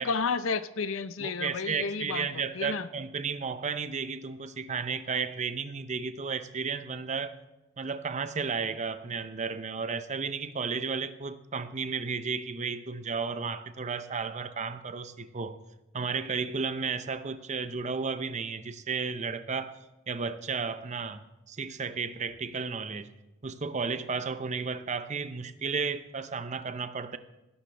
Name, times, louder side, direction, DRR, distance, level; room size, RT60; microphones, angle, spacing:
voice 1, 0.0-2.3 2.5-2.9, left 5 dB, 70° left, 0.6 m, -31 dB
voice 2, 1.2-7.4 7.8-15.6 15.9-19.8 20.1-23.1 23.4-27.2, right 5 dB, 35° right, 0.6 m, -33 dB
18.5 x 11.5 x 3.4 m
head